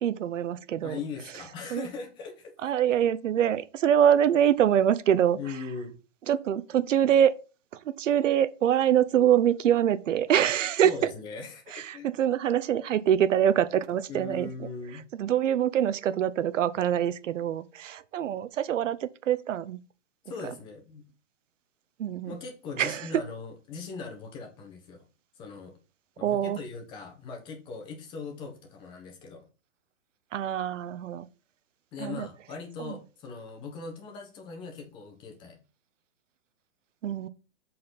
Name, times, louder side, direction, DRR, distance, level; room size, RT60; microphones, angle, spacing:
voice 1, 0.0-1.0 1.7-1.9 2.6-5.6 6.3-7.3 7.7-11.1 11.7-19.8 22.0-22.4 22.8-23.1 26.2-26.6 30.3-31.3 32.0-32.3 32.8-33.0 37.0-37.3, right 10 dB, 90° right, 0.8 m, -25 dB
voice 2, 0.8-2.5 5.4-5.9 10.8-12.1 14.1-15.0 20.3-21.0 22.2-25.0 25.3-25.7 26.2-29.4 31.9-35.6, left 4 dB, 15° left, 1.1 m, -40 dB
7.6 x 4.2 x 4.1 m
hypercardioid pair, 175°, 36 cm